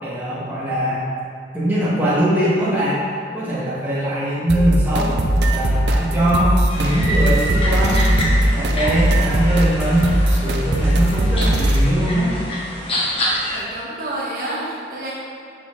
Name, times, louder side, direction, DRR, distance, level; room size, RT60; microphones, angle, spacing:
voice 1, 0.0-1.1 1.5-3.0 3.3-5.2 5.5-10.1 10.4-12.3, equal, 10° right, -10 dB, 2.0 m, -21 dB
sound 1, 4.5-11.9, right 1 dB, 70° right, 0.7 m, -19 dB
sound 2, 6.7-13.6, equal, 30° left, 1.2 m, -27 dB
voice 2, 13.5-15.1, right 1 dB, 50° right, -7 dB, 1.4 m, -29 dB
7.7 x 6.1 x 4.0 m, 2.5 s
head